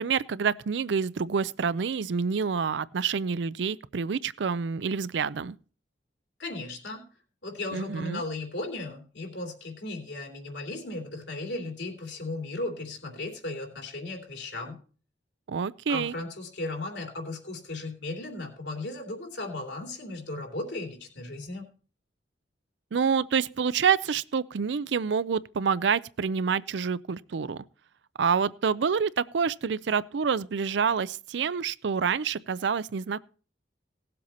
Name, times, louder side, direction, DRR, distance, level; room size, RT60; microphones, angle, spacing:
voice 1, 0.0-5.5 7.7-8.2 15.5-16.1 22.9-27.6 28.2-33.2, right 6 dB, 75° right, 0.4 m, -27 dB
voice 2, 6.4-7.1 7.4-14.8 15.9-21.6, left 2 dB, 75° left, 2.8 m, -36 dB
17.5 x 7.7 x 4.2 m
head